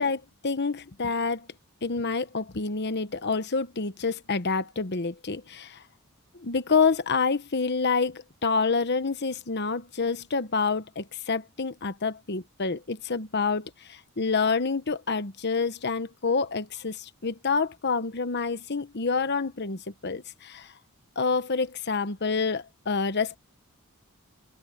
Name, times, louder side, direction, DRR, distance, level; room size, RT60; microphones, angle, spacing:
voice 1, 0.0-1.5 1.8-5.8 6.3-20.7 21.2-23.4, left 4 dB, 50° left, 1.1 m, -28 dB
open air
head